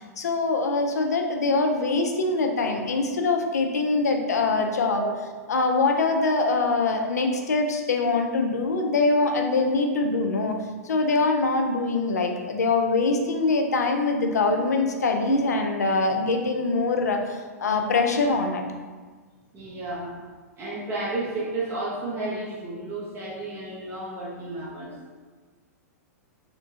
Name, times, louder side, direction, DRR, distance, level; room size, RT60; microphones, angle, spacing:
voice 1, 0.0-5.0 5.5-10.6 10.8-18.6, left 3 dB, 75° left, 3 dB, 0.4 m, -23 dB
voice 2, 19.5-20.1 20.6-25.0, right 2 dB, 25° right, -6 dB, 0.6 m, -32 dB
2.9 x 2.2 x 2.5 m, 1.4 s
figure-of-eight pair, 105°, 9 cm